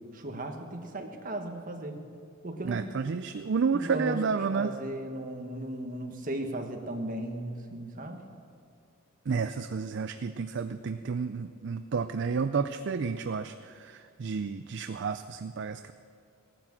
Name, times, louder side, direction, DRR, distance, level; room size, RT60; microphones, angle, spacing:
voice 1, 0.1-2.0 2.4-2.9 3.7-8.2, right 1 dB, 40° right, 3 dB, 1.4 m, -36 dB
voice 2, 2.7-4.7 9.3-15.9, right 5 dB, 55° right, 10 dB, 0.4 m, -31 dB
17.0 x 10.0 x 7.4 m, 2.3 s
head